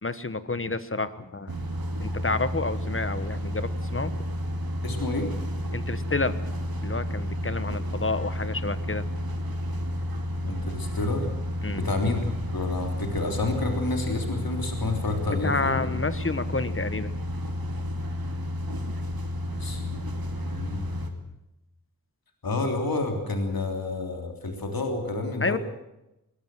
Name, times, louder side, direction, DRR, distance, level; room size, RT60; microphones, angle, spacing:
voice 1, 0.0-1.5 2.0-4.1 5.7-6.4 6.8-9.0 11.6-11.8 15.4-17.1 25.4-25.6, left 3 dB, 35° left, 13 dB, 1.3 m, -29 dB
sound 1, 1.5-21.1, equal, 75° right, 2.6 m, -31 dB
voice 2, 4.8-5.3 10.4-11.3 11.7-15.9 19.5-20.9 22.4-25.6, left 2 dB, 75° left, 3 dB, 3.4 m, -30 dB
21.5 x 19.5 x 7.7 m, 0.91 s
wide cardioid pair, 80°, 36 cm